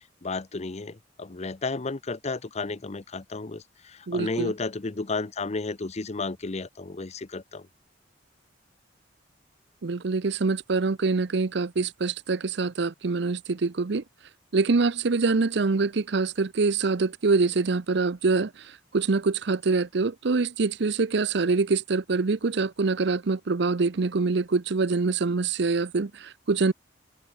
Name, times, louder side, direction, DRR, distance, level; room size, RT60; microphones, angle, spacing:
voice 1, 0.2-7.7, left 3 dB, 35° left, 0.8 m, -32 dB
voice 2, 4.1-4.5 9.8-14.0 14.5-18.5 18.9-26.7, right 4 dB, 70° right, 0.7 m, -25 dB
open air
head